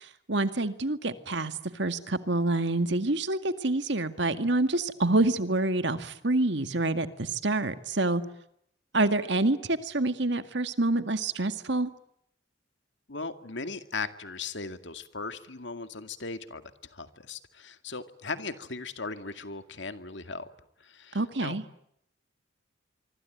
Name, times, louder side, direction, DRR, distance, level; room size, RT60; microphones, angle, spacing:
voice 1, 0.0-8.2 8.9-11.9 21.1-21.6, right 2 dB, 60° right, 10 dB, 2.0 m, -27 dB
voice 2, 13.1-20.5 20.8-21.6, left 4 dB, 65° left, 9 dB, 2.2 m, -38 dB
25.5 x 24.5 x 9.3 m, 0.75 s
head